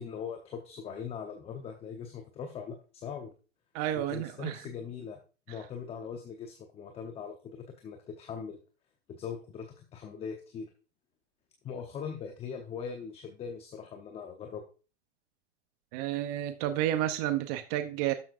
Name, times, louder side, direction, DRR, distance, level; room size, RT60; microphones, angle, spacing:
voice 1, 0.0-3.3 4.1-5.2 5.5-8.6 9.1-10.7 11.6-14.6, left 6 dB, 15° left, 4 dB, 0.9 m, -41 dB
voice 2, 3.7-4.6 15.9-18.1, right 13 dB, 35° right, 9 dB, 0.8 m, -31 dB
12.0 x 7.3 x 2.6 m, 0.35 s
hypercardioid pair, 130°, 36 cm